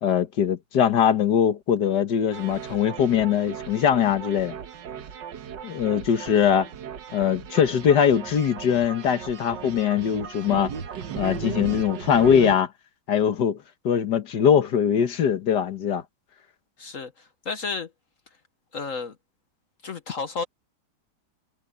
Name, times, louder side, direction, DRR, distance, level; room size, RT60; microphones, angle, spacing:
voice 1, 0.0-4.6 5.6-6.7 7.1-10.7 11.2-12.7 13.1-13.6 13.8-16.0, left 8 dB, 70° left, 1.9 m, -21 dB
sound 1, 2.3-12.6, right 7 dB, 85° right, 1.9 m, -37 dB
voice 2, 16.8-17.9 18.7-19.1 19.8-20.4, left 4 dB, 50° left, 1.4 m, -32 dB
omnidirectional pair, 1.9 m